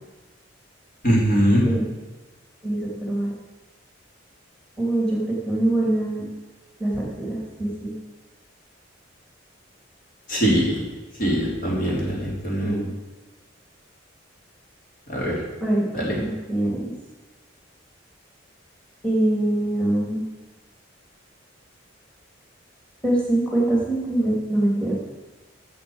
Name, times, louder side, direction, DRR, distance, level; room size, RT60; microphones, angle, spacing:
voice 1, 1.0-1.6 10.3-10.8 11.2-12.7 15.1-15.4 15.9-16.2, equal, 45° left, -3 dB, 3.1 m, -21 dB
voice 2, 2.6-3.3 4.8-6.3 6.8-7.9 12.6-12.9 15.6-15.9 16.1-16.9 19.0-20.2 23.0-25.0, right 1 dB, 5° left, -5 dB, 2.5 m, -24 dB
8.4 x 7.2 x 7.7 m, 1.2 s
head